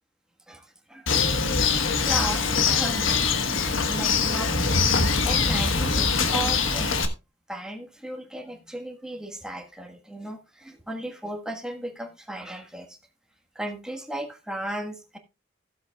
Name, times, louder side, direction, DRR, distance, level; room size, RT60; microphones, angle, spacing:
voice 1, 0.5-1.1 2.0-3.3 3.9-4.6 5.2-7.0 7.5-13.0 13.5-15.2, right 1 dB, 5° right, 1.4 m, -35 dB
Bird, 1.1-7.1, left 5 dB, 80° left, 1.3 m, -23 dB
15.5 x 7.8 x 2.3 m
head